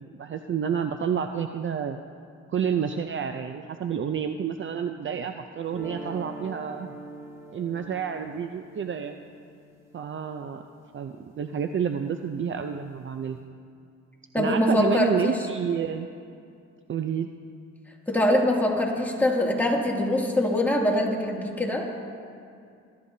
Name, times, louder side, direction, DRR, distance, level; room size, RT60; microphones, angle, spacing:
voice 1, 0.0-2.0 2.5-6.9 7.5-9.2 9.9-10.6 10.9-13.5 14.4-16.1 16.9-17.3, right 7 dB, 40° right, 7 dB, 0.6 m, -29 dB
sound 1, 5.7-11.8, right 2 dB, 10° right, 2.5 m, -44 dB
voice 2, 14.3-15.3 18.1-21.9, left 1 dB, 5° left, -3 dB, 2.5 m, -23 dB
22.0 x 12.5 x 2.8 m, 2.4 s
cardioid pair, 90°, 30 cm